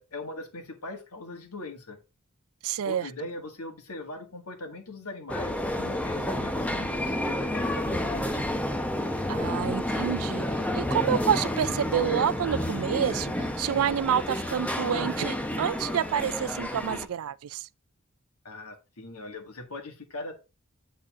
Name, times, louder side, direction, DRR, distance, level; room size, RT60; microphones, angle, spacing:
voice 1, 0.0-2.0 2.8-8.4 18.4-20.3, left 2 dB, 75° left, 1.8 m, -40 dB
voice 2, 2.6-3.1 9.3-10.4 10.7-17.7, right 8 dB, 70° right, 0.4 m, -28 dB
sound 1, 5.3-17.1, left 1 dB, 5° left, 0.7 m, -30 dB
9.3 x 4.1 x 3.6 m
head